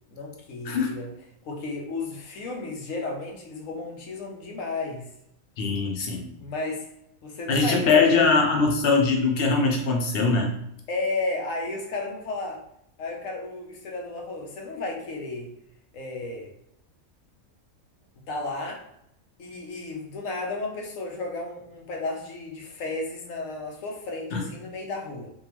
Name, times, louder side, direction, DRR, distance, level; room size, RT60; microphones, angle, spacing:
voice 1, 0.1-1.1 1.4-5.1 6.4-6.8 7.2-8.2 10.9-12.6 13.0-15.5 15.9-16.5 18.3-18.8 19.4-25.3, left 2 dB, 70° left, 1 dB, 1.1 m, -33 dB
voice 2, 5.6-6.3 7.5-10.5 24.3-24.4, left 4 dB, 55° left, 1 dB, 0.7 m, -22 dB
3.6 x 2.5 x 2.9 m, 0.74 s
omnidirectional pair, 1.5 m